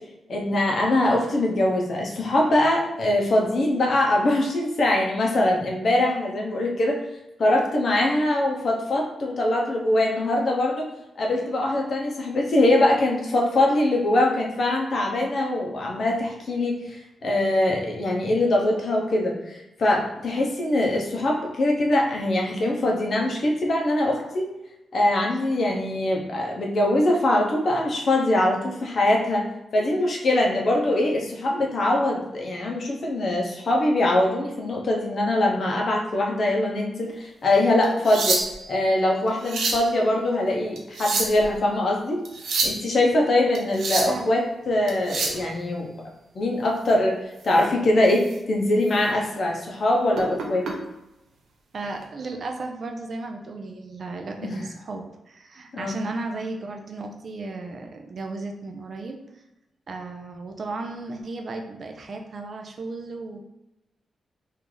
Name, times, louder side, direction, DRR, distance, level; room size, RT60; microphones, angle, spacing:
voice 1, 0.3-7.0 7.4-10.9 11.2-24.4 24.9-29.4 29.7-38.4 38.7-42.2 42.6-45.9 46.4-47.2 47.4-50.6 54.4-54.6 55.7-55.9, left 1 dB, 45° left, 0 dB, 0.7 m, -22 dB
sound 1, 37.8-38.7 39.3-39.9 40.8-41.5 42.3-42.8 43.5-44.2 44.9-45.4 47.5-47.6 48.2-48.4 48.8-49.0 50.1-50.7 51.8-52.0, right 3 dB, 85° right, 0.6 m, -27 dB
voice 2, 51.7-59.2 59.9-63.4, right 3 dB, 40° right, 3 dB, 0.4 m, -35 dB
3.1 x 2.5 x 3.7 m, 0.94 s
wide cardioid pair, 170°, 0 cm